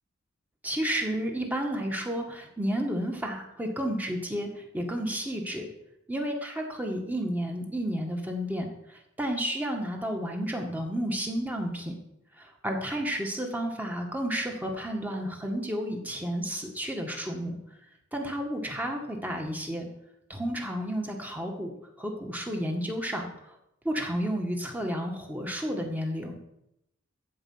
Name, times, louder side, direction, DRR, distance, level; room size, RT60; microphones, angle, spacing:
voice 1, 0.6-5.7 6.1-12.0 12.4-17.6 18.1-19.9 20.3-21.7 22.0-23.3 23.8-26.4, equal, 10° right, 2 dB, 1.9 m, -31 dB
14.5 x 5.4 x 7.9 m, 0.81 s
head